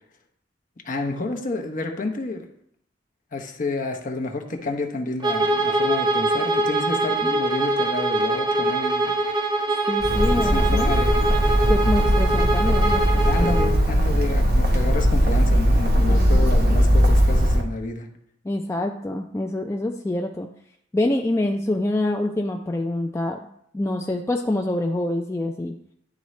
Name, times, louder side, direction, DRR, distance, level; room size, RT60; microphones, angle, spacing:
voice 1, 0.8-2.5 3.3-9.2 10.3-11.3 13.3-18.1, left 2 dB, 45° left, 3 dB, 0.8 m, -30 dB
Bowed string instrument, 5.2-13.7, right 2 dB, 25° right, 0.7 m, -23 dB
voice 2, 9.9-10.9 11.7-13.0 13.4-13.7 16.1-16.8 18.4-20.5 20.9-23.5 23.7-25.7, left 1 dB, 15° left, 2 dB, 0.3 m, -26 dB
Bird, 10.0-17.6, equal, 55° right, 1.0 m, -19 dB
11.0 x 3.8 x 3.1 m, 0.69 s
head